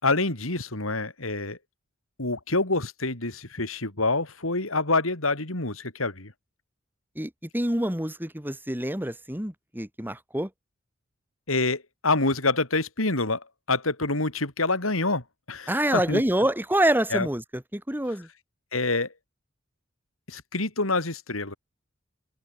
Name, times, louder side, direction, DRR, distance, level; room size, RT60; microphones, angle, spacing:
voice 1, 0.0-1.6 2.2-6.3 11.5-16.2 17.1-17.3 18.7-19.1 20.3-21.5, left 3 dB, 90° left, 4.3 m, -27 dB
voice 2, 7.2-10.5 15.7-18.3, right 1 dB, 10° right, 3.1 m, -26 dB
open air
head